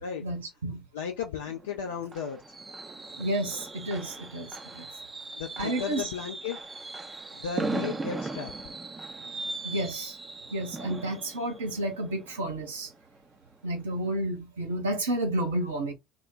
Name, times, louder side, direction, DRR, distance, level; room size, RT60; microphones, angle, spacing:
voice 1, 0.2-0.8 3.2-4.9 5.6-6.1 9.6-10.1 10.5-12.9 13.6-15.9, right 1 dB, 75° right, 0.8 m, -31 dB
voice 2, 0.9-2.4 5.4-6.6 7.3-8.5, left 7 dB, 70° left, 0.4 m, -34 dB
Fireworks, 1.5-13.2 13.5-13.8 14.1-14.2, right 3 dB, 20° right, 0.5 m, -38 dB
2.1 x 2.1 x 3.8 m
figure-of-eight pair, 60°, 0 cm